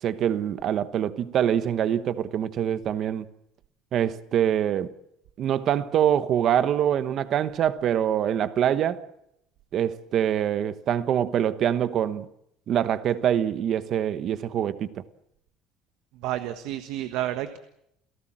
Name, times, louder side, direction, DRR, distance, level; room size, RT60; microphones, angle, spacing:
voice 1, 0.0-3.3 3.9-4.9 5.4-9.0 9.7-12.3 12.7-15.0, right 10 dB, 40° right, 1.1 m, -24 dB
voice 2, 16.1-17.6, right 13 dB, 65° right, 1.4 m, -30 dB
29.0 x 17.5 x 7.5 m
cardioid pair, 170°, 0 cm